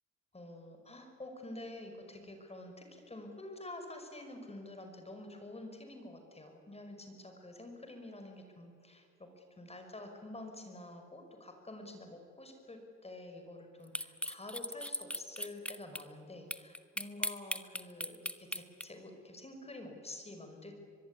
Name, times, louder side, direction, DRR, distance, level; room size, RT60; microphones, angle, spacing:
voice 1, 0.3-20.7, left 2 dB, 20° left, 5 dB, 5.5 m, -48 dB
sound 1, 14.0-16.0 16.5-18.9, left 1 dB, 5° left, 1.2 m, -37 dB
23.5 x 21.5 x 9.8 m, 2.3 s
cardioid pair, 90°, 30 cm